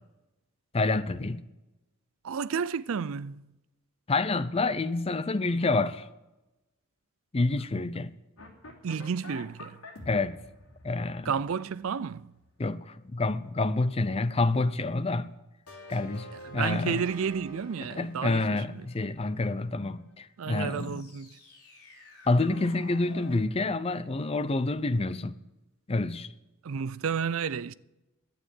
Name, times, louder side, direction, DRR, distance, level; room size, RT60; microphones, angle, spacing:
voice 1, 0.7-1.4 4.1-6.1 7.3-8.2 10.1-10.4 10.8-11.3 12.6-15.3 15.9-16.3 16.5-17.1 17.8-21.0 22.3-25.4 25.9-26.3, left 2 dB, 25° left, 0.5 m, -28 dB
voice 2, 2.2-3.4 8.8-9.8 11.3-12.3 16.5-18.4 20.4-21.4 26.6-27.7, right 6 dB, 65° right, 0.4 m, -31 dB
sound 1, 8.4-12.4 15.7-19.4 20.4-23.4, left 1 dB, 85° left, 2.9 m, -48 dB
11.5 x 9.4 x 8.2 m
head